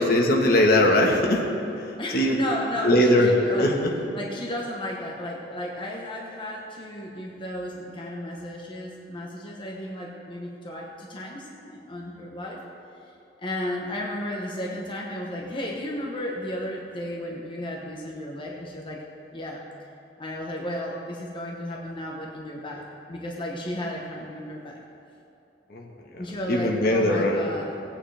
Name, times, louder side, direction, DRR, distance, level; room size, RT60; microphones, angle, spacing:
voice 1, 0.0-1.4 2.1-2.4 2.8-3.3 3.6-3.9 25.7-25.8 26.5-27.5, left 1 dB, 55° left, 0 dB, 1.4 m, -20 dB
voice 2, 2.0-3.7 4.1-12.6 13.4-19.0 19.3-19.7 20.2-24.8 26.2-27.7, left 1 dB, 30° left, -2 dB, 1.0 m, -34 dB
17.0 x 8.9 x 3.4 m, 2.8 s
head